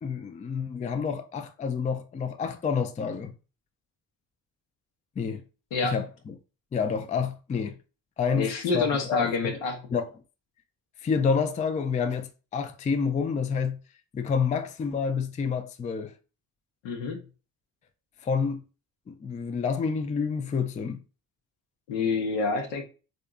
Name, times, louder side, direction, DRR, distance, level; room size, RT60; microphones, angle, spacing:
voice 1, 0.0-3.3 5.2-5.4 5.8-6.1 6.7-7.8 8.2-8.5 8.7-9.5 9.9-10.0 11.0-13.8 14.1-16.1 18.2-18.6 19.1-21.0, left 6 dB, 20° left, 0.3 m, -28 dB
voice 2, 8.3-9.8 16.8-17.2 21.9-22.8, left 4 dB, 75° left, 0.9 m, -27 dB
3.5 x 2.6 x 2.3 m
hypercardioid pair, 50°, 45 cm